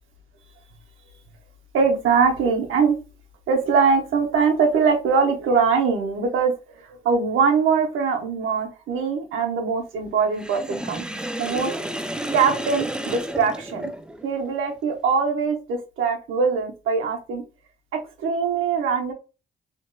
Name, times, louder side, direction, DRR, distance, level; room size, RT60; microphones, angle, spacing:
voice 1, 1.7-3.0 3.5-6.5 6.8-11.8 12.3-13.9 14.2-17.4 17.9-19.1, right 5 dB, 80° right, 3 dB, 0.9 m, -22 dB
Sink (filling or washing), 10.4-14.3, right 1 dB, 5° right, 0.3 m, -31 dB
3.0 x 2.9 x 2.2 m, 0.32 s
supercardioid pair, 55°, 20 cm